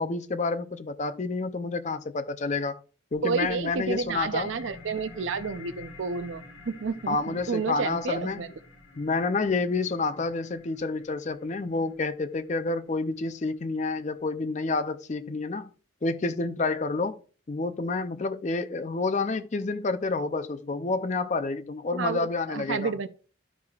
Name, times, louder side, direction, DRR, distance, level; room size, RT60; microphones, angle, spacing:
voice 1, 0.0-2.8 3.1-4.5 7.1-8.5 9.0-15.7 16.0-17.1 17.5-22.9, left 3 dB, 35° left, 0.4 m, -29 dB
sound 1, 3.1-14.1, left 3 dB, 60° left, 1.6 m, -50 dB
voice 2, 3.2-8.5 21.9-23.1, right 5 dB, 70° right, 0.5 m, -30 dB
12.5 x 4.8 x 2.3 m
head